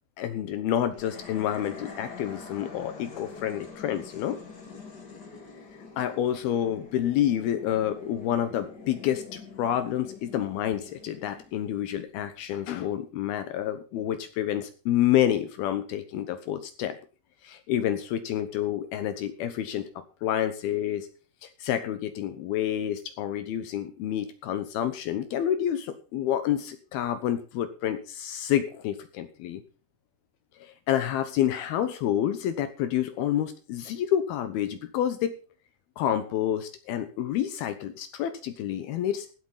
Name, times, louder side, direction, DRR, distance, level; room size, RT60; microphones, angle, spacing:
voice 1, 0.2-4.4 6.0-17.0 17.4-21.1 21.4-29.6 30.6-35.3 36.0-39.3, left 11 dB, 80° left, 10 dB, 2.3 m, -28 dB
sound 1, 0.9-12.3, left 4 dB, 40° left, 1.5 m, -45 dB
16.0 x 8.1 x 5.6 m, 0.36 s
omnidirectional pair, 5.8 m